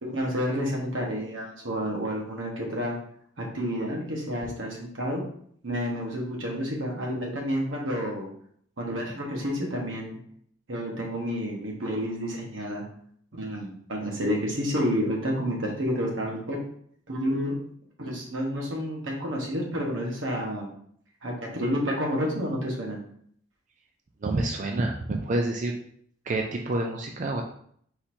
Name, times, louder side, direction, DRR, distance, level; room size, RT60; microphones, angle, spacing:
voice 1, 0.0-2.9 3.4-5.2 5.6-8.3 8.8-10.1 10.7-12.8 13.4-16.6 17.1-17.5 18.0-20.7 21.2-23.0, equal, 85° right, -1 dB, 1.2 m, -30 dB
voice 2, 24.2-25.7 26.3-27.4, right 2 dB, 40° right, 2 dB, 0.4 m, -28 dB
4.0 x 2.6 x 4.3 m, 0.63 s
head